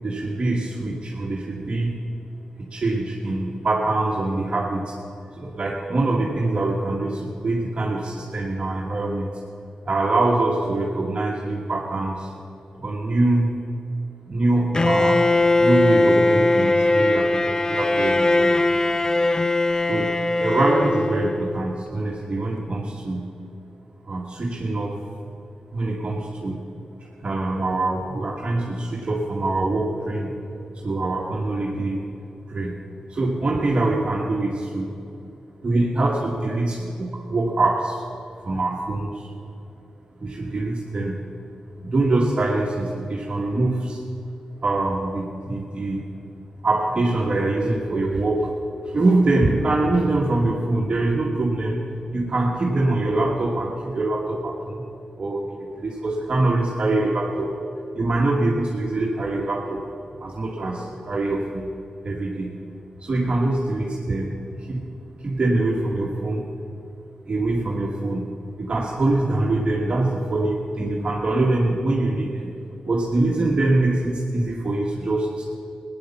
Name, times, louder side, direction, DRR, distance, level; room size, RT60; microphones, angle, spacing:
voice 1, 0.0-2.0 2.7-5.0 5.4-9.3 9.8-12.3 12.7-13.5 14.3-15.3 15.6-18.6 19.8-23.3 24.1-25.0 25.7-26.6 27.0-30.3 30.7-32.1 32.5-32.7 33.1-34.9 35.6-38.1 38.4-39.3 40.2-41.2 41.8-44.0 44.6-46.1 46.6-48.5 48.8-51.8 52.1-54.8 55.2-57.6 57.9-59.8 60.2-61.7 62.0-62.5 63.0-64.9 65.2-66.5 67.3-68.3 68.6-72.5 72.8-75.5, right 2 dB, 45° right, -2 dB, 1.6 m, -24 dB
Bowed string instrument, 14.7-21.7, left 2 dB, 25° left, 0.5 m, -20 dB
16.5 x 10.0 x 7.2 m, 2.7 s
cardioid pair, 70°, 3 cm